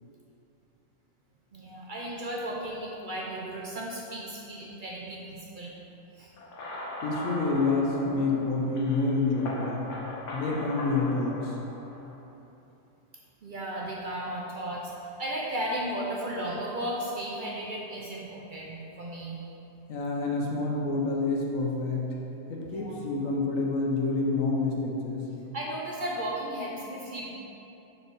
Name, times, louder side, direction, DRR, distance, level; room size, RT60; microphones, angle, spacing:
voice 1, 1.5-5.7 6.2-6.3 13.4-19.4 22.7-23.0 25.5-27.3, right 1 dB, 55° right, -3 dB, 0.6 m, -35 dB
sound 1, 6.4-12.2, left 1 dB, 65° left, 1.1 m, -39 dB
voice 2, 7.0-9.8 10.3-11.6 19.9-22.1 22.5-25.3, left 3 dB, 85° left, -1 dB, 1.3 m, -28 dB
4.5 x 4.2 x 5.4 m, 3.0 s
omnidirectional pair, 1.3 m